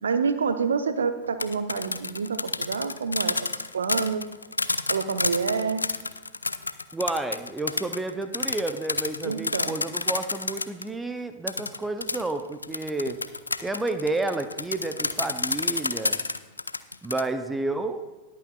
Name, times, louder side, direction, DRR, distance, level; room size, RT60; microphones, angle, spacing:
voice 1, 0.0-3.4 3.7-4.2 4.9-5.9 9.2-9.8, right 5 dB, 70° right, 10 dB, 0.8 m, -27 dB
sound 1, 1.2-10.9 11.5-17.2, left 3 dB, 80° left, 0.4 m, -29 dB
voice 2, 6.9-13.2 13.6-16.2 17.0-18.0, right 2 dB, 10° right, 9 dB, 0.6 m, -30 dB
20.5 x 8.4 x 2.3 m, 1.2 s
figure-of-eight pair, 90°, 0 cm